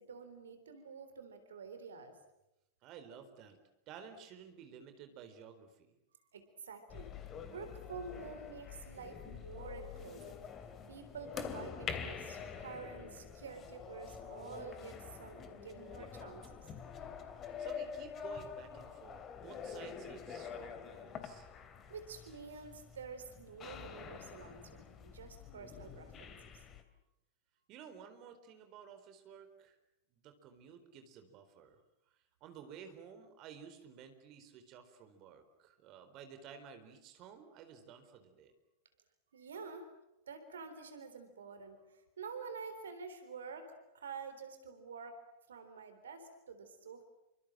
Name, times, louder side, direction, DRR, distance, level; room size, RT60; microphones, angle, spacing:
voice 1, 0.0-2.2 6.3-7.1 7.5-10.4 10.9-16.7 21.9-26.6 39.3-39.8 40.3-45.2 45.5-47.0, right 5 dB, 65° right, 9 dB, 3.8 m, -48 dB
voice 2, 2.8-3.6 3.9-6.0 17.6-21.5 27.7-29.8 30.1-31.8 32.4-38.5, right 7 dB, 40° right, 8 dB, 4.3 m, -54 dB
sound 1, 6.9-26.8, left 6 dB, 30° left, 2.9 m, -46 dB
28.5 x 25.5 x 7.7 m, 0.88 s
figure-of-eight pair, 90°, 0 cm